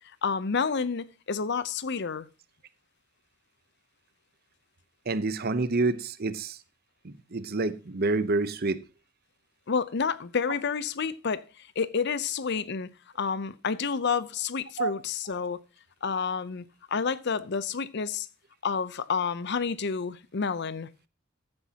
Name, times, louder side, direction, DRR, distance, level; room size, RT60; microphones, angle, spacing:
voice 1, 0.2-2.3 9.7-11.4 11.8-12.9 13.2-15.6 16.0-16.6 16.9-18.3 18.6-20.9, left 5 dB, 55° left, 0.6 m, -29 dB
voice 2, 5.1-6.6 7.0-8.8 14.8-14.9, right 3 dB, 50° right, 0.8 m, -28 dB
14.5 x 9.8 x 2.9 m
head